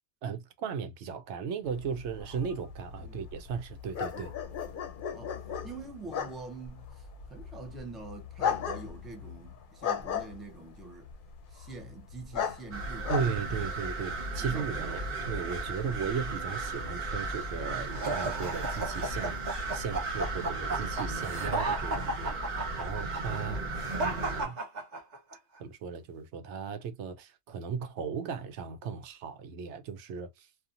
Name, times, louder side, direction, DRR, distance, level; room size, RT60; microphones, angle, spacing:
voice 1, 0.2-4.3 13.1-22.4 22.8-23.6 24.0-24.6 25.6-30.5, right 6 dB, 90° right, 0.9 m, -36 dB
sound 1, 1.7-14.2, left 7 dB, 55° left, 0.7 m, -37 dB
voice 2, 5.6-11.1 11.5-13.7 14.4-15.0 23.4-23.7, right 3 dB, ahead, 0.4 m, -46 dB
sound 2, 12.7-24.5, right 2 dB, 60° right, 1.3 m, -35 dB
sound 3, 17.9-25.4, right 2 dB, 45° right, 0.8 m, -34 dB
2.8 x 2.4 x 2.4 m
omnidirectional pair, 1.1 m